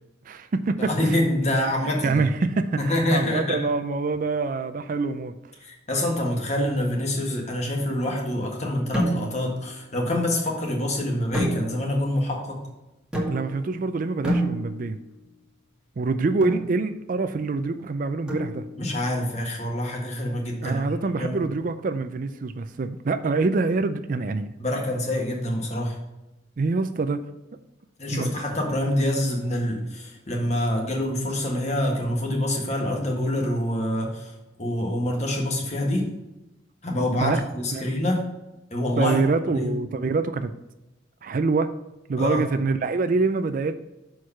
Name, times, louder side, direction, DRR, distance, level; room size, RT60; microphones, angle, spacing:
voice 1, 0.3-1.2 2.0-5.4 13.3-15.0 16.0-18.6 20.6-24.5 26.6-27.2 28.1-28.3 37.2-37.4 37.7-37.9 39.0-40.5 41.2-41.7 42.1-43.8, right 3 dB, 45° right, 10 dB, 0.4 m, -25 dB
voice 2, 0.8-2.2 2.8-3.6 5.6-12.6 18.8-20.8 21.2-21.4 24.6-26.0 28.0-34.3 34.6-36.1 36.8-38.2 38.7-39.2 39.5-39.7 42.2-42.4, left 1 dB, 35° left, 0 dB, 1.6 m, -26 dB
sound 1, 8.9-9.6 11.3-12.1 13.1-13.7 14.2-15.0 16.4-16.7 18.3-18.9, equal, 5° right, 1.6 m, -28 dB
6.5 x 4.6 x 5.7 m, 0.98 s
head